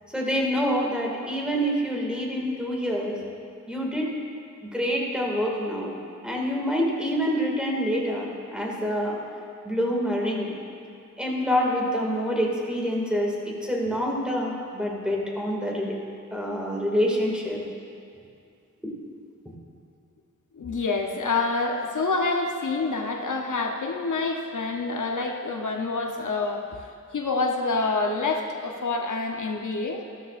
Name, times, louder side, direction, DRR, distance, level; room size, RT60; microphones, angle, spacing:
voice 1, 0.1-3.2 3.7-4.1 4.6-5.9 6.2-9.2 9.6-10.5 11.2-16.0 16.3-17.6 18.8-18.9, equal, 5° right, -2 dB, 2.1 m, -26 dB
voice 2, 20.5-26.9 27.1-30.0, left 3 dB, 75° left, 2 dB, 0.8 m, -27 dB
13.5 x 13.0 x 2.5 m, 2.4 s
wide cardioid pair, 60°, 31 cm